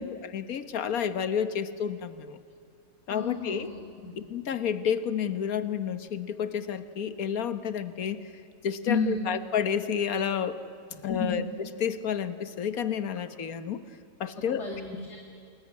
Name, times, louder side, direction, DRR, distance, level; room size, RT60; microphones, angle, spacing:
voice 1, 0.0-2.4 3.1-3.7 4.3-8.3 8.6-10.6 11.0-11.4 11.8-13.8 14.2-14.6, left 8 dB, 65° left, 11 dB, 1.6 m, -30 dB
voice 2, 3.1-4.2 8.9-9.3 10.9-11.5 14.4-15.2, left 3 dB, 45° left, 1 dB, 2.5 m, -32 dB
29.0 x 20.5 x 9.7 m, 2.4 s
omnidirectional pair, 1.7 m